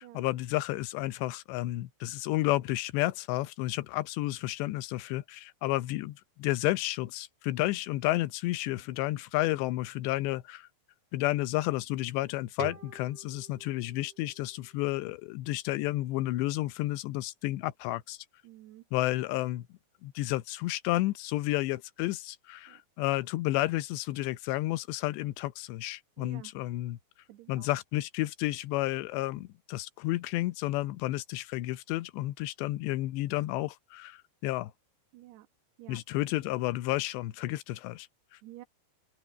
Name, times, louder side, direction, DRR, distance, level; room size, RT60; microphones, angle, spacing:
voice 1, 0.0-10.7 11.1-18.2 18.9-19.7 20.0-27.0 27.5-34.7 35.9-38.1, left 17 dB, 80° left, 2.9 m, -31 dB
sound 1, 12.6-15.4, right 9 dB, 50° right, 2.9 m, -47 dB
voice 2, 18.4-18.8 22.7-22.8 26.2-26.5 27.3-27.7 35.1-35.5 35.8-36.0 38.4-38.7, right 15 dB, 70° right, 3.6 m, -50 dB
open air
omnidirectional pair, 5.2 m